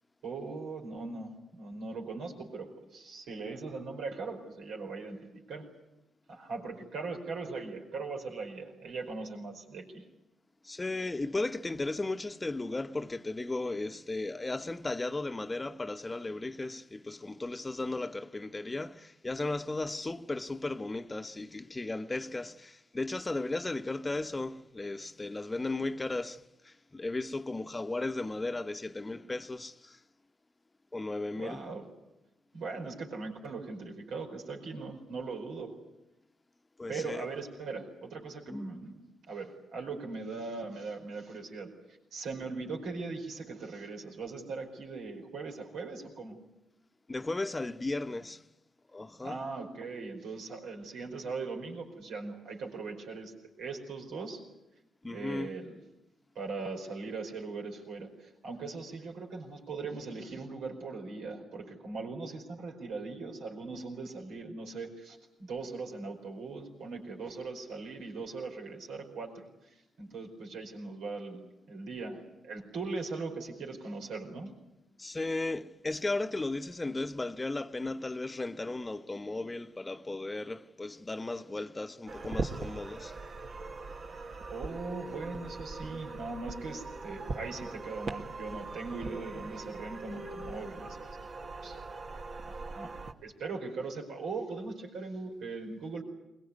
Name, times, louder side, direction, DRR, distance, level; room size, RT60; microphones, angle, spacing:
voice 1, 0.2-5.7 6.3-10.0 31.3-31.8 32.5-35.7 36.9-39.0 39.3-41.7 42.1-46.4 49.2-54.4 55.1-55.8 56.3-74.6 84.5-91.1 91.6-91.8 92.4-93.0 93.2-96.0, right 3 dB, 75° right, 4.8 m, -40 dB
voice 2, 10.6-30.0 30.9-31.6 36.8-37.2 38.5-38.7 47.1-48.4 48.9-49.4 55.0-55.6 75.0-83.1, left 2 dB, 25° left, 1.1 m, -35 dB
sound 1, 82.1-93.1, right 3 dB, 55° right, 1.9 m, -41 dB
21.5 x 21.5 x 9.5 m
hypercardioid pair, 45°, 0 cm